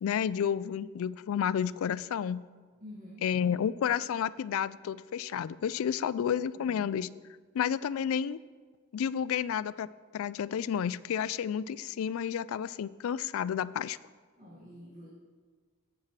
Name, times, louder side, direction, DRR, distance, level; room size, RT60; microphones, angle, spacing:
voice 1, 0.0-2.4 3.2-7.1 7.5-8.4 8.9-9.9 10.1-14.0, left 8 dB, 65° left, 18 dB, 0.3 m, -31 dB
voice 2, 2.8-3.3 6.5-6.9 14.4-15.1, left 1 dB, 35° right, -8 dB, 2.1 m, -49 dB
17.0 x 7.1 x 3.3 m, 1.5 s
head